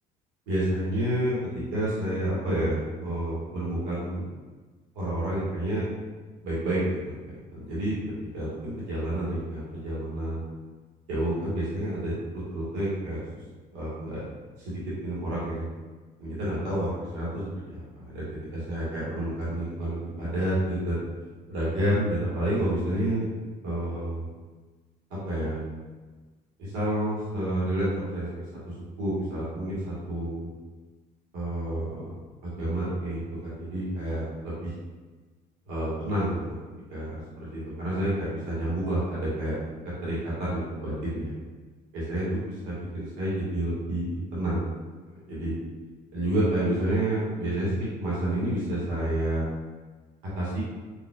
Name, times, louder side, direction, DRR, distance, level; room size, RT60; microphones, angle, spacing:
voice 1, 0.5-4.2 4.9-5.8 6.4-7.1 7.5-8.0 8.3-10.4 11.1-13.2 13.7-14.2 14.6-15.6 16.2-18.2 18.7-21.0 21.5-23.3 23.6-24.3 25.2-25.6 26.6-28.4 28.7-30.5 31.3-32.1 32.4-34.7 35.7-36.5 36.9-39.6 40.0-41.3 41.9-44.6 45.3-45.5 46.1-49.4 50.4-50.6, right 1 dB, 80° right, -9 dB, 1.5 m, -29 dB
4.0 x 2.7 x 2.3 m, 1.3 s
hypercardioid pair, 60°, 21 cm